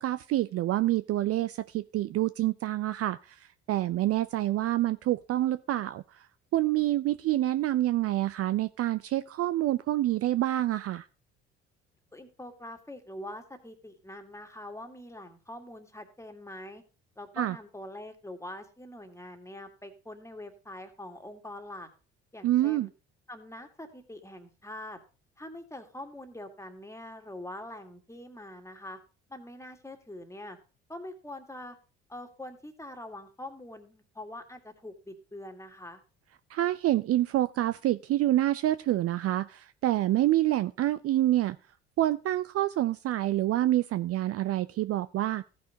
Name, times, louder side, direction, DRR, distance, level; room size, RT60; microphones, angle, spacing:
voice 1, 0.0-6.3 6.5-11.1 17.4-17.6 22.4-22.9 36.5-41.6 42.0-45.4, right 14 dB, 45° right, 14 dB, 0.5 m, -27 dB
voice 2, 12.1-16.8 17.2-21.9 22.3-22.9 23.3-25.0 25.4-29.0 29.3-30.6 30.9-31.8 32.1-36.0, left 1 dB, 10° left, 6 dB, 2.1 m, -44 dB
15.0 x 5.6 x 4.0 m, 0.34 s
hypercardioid pair, 60°, 33 cm